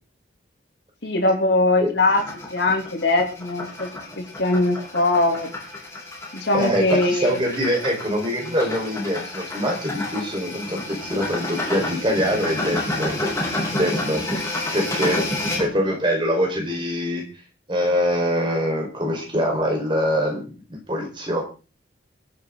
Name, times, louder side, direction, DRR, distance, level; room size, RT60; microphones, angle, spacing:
voice 1, 1.0-2.2 2.5-3.9 4.4-5.5 6.3-7.4, left 2 dB, 70° left, 1 dB, 3.5 m, -21 dB
sound 1, 2.1-15.7, left 2 dB, 15° left, 3.7 m, -30 dB
voice 2, 6.5-13.3 13.8-14.2 14.7-15.2 15.6-17.2 17.7-21.4, equal, 25° right, 1 dB, 5.2 m, -24 dB
22.5 x 9.5 x 4.1 m, 0.34 s
head